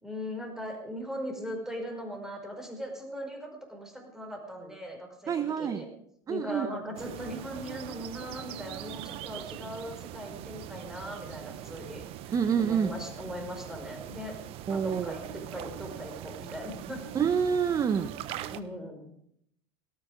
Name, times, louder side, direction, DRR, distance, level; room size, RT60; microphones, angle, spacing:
voice 1, 0.0-5.9 6.3-17.0 18.5-19.2, equal, 5° right, 3 dB, 5.1 m, -39 dB
voice 2, 5.3-5.8 6.3-6.7 12.3-12.9 14.7-15.2 17.1-18.1, right 7 dB, 30° right, 11 dB, 1.0 m, -27 dB
sound 1, 7.0-18.6, right 12 dB, 50° right, 1.1 m, -42 dB
17.5 x 13.5 x 5.1 m, 0.70 s
hypercardioid pair, 95°, 12 cm